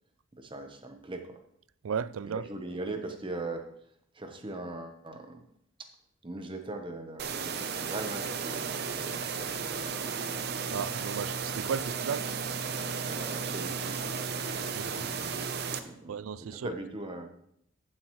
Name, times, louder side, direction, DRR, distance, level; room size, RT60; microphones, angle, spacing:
voice 1, 0.4-1.4 2.3-3.7 4.1-5.4 6.2-9.2 9.6-10.4 13.0-14.2 15.8-16.1 16.5-17.3, right 2 dB, 25° right, 1.0 m, -40 dB
voice 2, 1.8-2.4 10.7-12.3 14.7-15.0 16.1-16.7, right 7 dB, 75° right, 0.3 m, -34 dB
sound 1, 7.2-15.8, right 5 dB, 50° right, 0.7 m, -34 dB
14.5 x 7.5 x 3.1 m
head